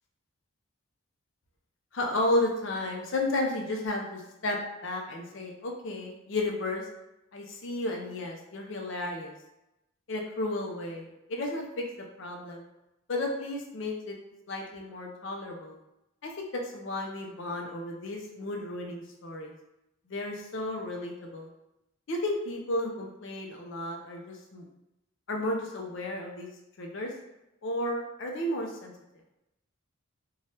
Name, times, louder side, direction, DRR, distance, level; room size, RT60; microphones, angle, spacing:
voice 1, 1.9-4.6 4.8-6.9 7.3-9.3 10.1-12.6 13.1-14.2 14.5-15.8 16.2-19.5 20.1-21.5 22.1-24.7 25.3-26.5 26.8-27.1 27.6-28.9, left 1 dB, 55° left, 1 dB, 0.5 m, -33 dB
3.3 x 2.3 x 2.7 m, 0.92 s
head